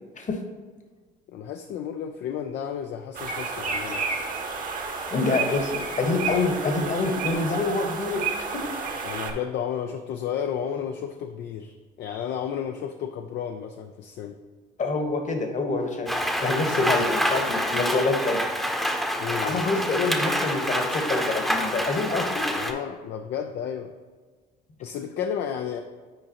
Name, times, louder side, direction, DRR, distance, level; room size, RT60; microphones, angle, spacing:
voice 1, 1.3-4.1 9.0-14.4 19.2-19.7 22.5-23.9 24.8-25.8, left 8 dB, 55° left, 5 dB, 0.5 m, -32 dB
sound 1, 3.1-9.3, right 5 dB, 40° right, 1.1 m, -31 dB
voice 2, 5.1-8.3 8.5-8.6 14.8-16.1 16.4-18.4 19.4-22.4, left 3 dB, 35° left, 5 dB, 1.2 m, -26 dB
Rain, 16.1-22.7, equal, ahead, 0.8 m, -27 dB
8.9 x 4.6 x 2.9 m, 1.4 s
hypercardioid pair, 65°, 21 cm